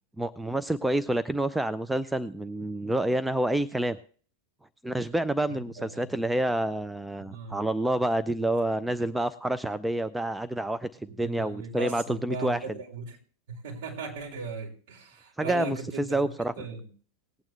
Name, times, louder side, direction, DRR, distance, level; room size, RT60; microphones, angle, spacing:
voice 1, 0.2-4.0 4.8-12.6 15.4-16.5, right 1 dB, 5° right, 12 dB, 0.4 m, -28 dB
voice 2, 5.5-6.3 7.3-7.7 8.4-8.5 11.1-13.2 13.5-16.3 16.6-16.9, right 4 dB, 55° right, 0 dB, 4.2 m, -38 dB
19.0 x 8.9 x 3.3 m, 0.43 s
figure-of-eight pair, 90°, 0 cm